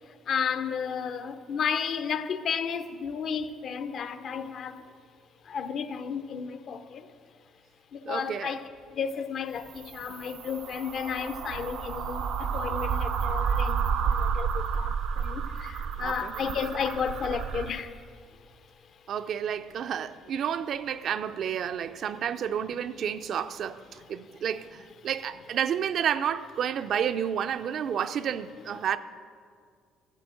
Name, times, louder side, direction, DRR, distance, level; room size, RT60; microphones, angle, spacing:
voice 1, 0.3-4.8 5.4-7.1 7.9-18.1, left 6 dB, 50° left, 0.6 m, -33 dB
voice 2, 8.1-8.6 16.0-16.3 19.1-29.0, right 8 dB, 50° right, 0.4 m, -30 dB
sound 1, 9.6-17.7, right 6 dB, 70° right, 0.8 m, -31 dB
13.0 x 7.4 x 7.6 m
cardioid pair, 135°, 0 cm